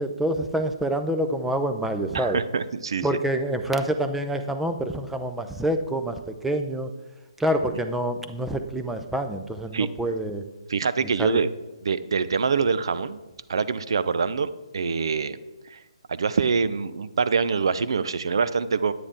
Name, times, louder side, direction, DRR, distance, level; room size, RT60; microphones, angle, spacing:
voice 1, 0.0-2.4 3.0-6.9 7.4-10.4 11.2-11.4, right 1 dB, 5° right, 7 dB, 0.5 m, -27 dB
voice 2, 2.1-3.1 9.7-9.9 10.7-11.5 11.8-13.2 13.5-15.4 15.7-15.8 16.1-18.9, right 5 dB, 55° right, 14 dB, 0.6 m, -25 dB
9.9 x 9.5 x 3.7 m, 1.1 s
figure-of-eight pair, 135°, 3 cm